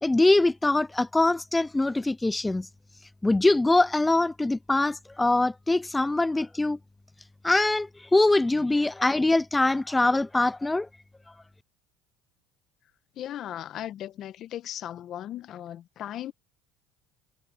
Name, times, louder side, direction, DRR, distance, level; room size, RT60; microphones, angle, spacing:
voice 1, 0.0-2.7 3.2-6.8 7.4-10.9, left 2 dB, 10° left, 0.4 m, -23 dB
voice 2, 13.2-16.3, left 11 dB, 55° left, 1.5 m, -37 dB
supercardioid pair, 95°, 0 cm